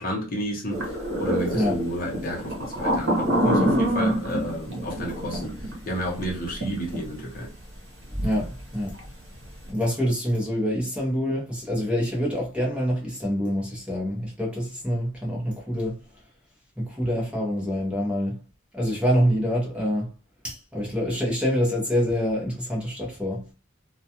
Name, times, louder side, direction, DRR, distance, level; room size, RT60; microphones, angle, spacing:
voice 1, 0.0-5.5 5.9-7.5, equal, 45° left, 0.8 m, -31 dB
sound 1, 0.7-6.6 6.9-7.0 8.2-8.4 8.7-9.0, equal, 60° right, 0.9 m, -25 dB
voice 2, 8.1-9.0 9.7-16.0 16.8-18.4 18.7-20.1 20.4-23.4, equal, 5° right, 0.8 m, -26 dB
2.3 x 2.3 x 2.8 m
head